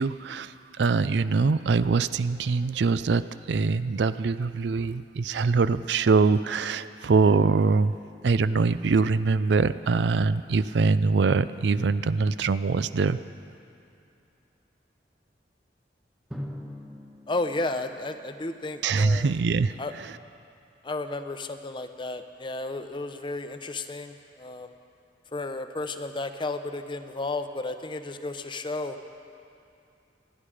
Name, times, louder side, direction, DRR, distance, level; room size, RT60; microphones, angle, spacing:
voice 1, 0.0-8.0 8.2-13.2 18.8-19.8 20.0-20.1, right 4 dB, 75° right, 14 dB, 0.4 m, -23 dB
Drum, 16.3-19.0, equal, 5° right, 1.3 m, -42 dB
voice 2, 17.3-19.3 19.8-19.9 20.8-24.7 25.3-29.0, left 2 dB, 25° left, 8 dB, 0.7 m, -33 dB
27.0 x 10.5 x 5.0 m, 2.6 s
head